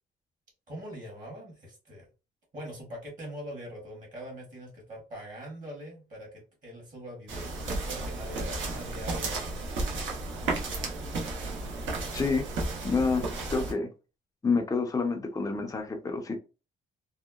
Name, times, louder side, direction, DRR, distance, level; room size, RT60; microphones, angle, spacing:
voice 1, 0.7-2.1 2.5-9.9, equal, 40° right, 1.3 m, -43 dB
sound 1, 7.3-13.7, right 2 dB, 75° right, 0.9 m, -33 dB
voice 2, 12.1-12.5 12.8-13.9 14.4-16.4, left 4 dB, 15° left, 0.5 m, -28 dB
2.8 x 2.0 x 2.3 m
cardioid pair, 90°, 20 cm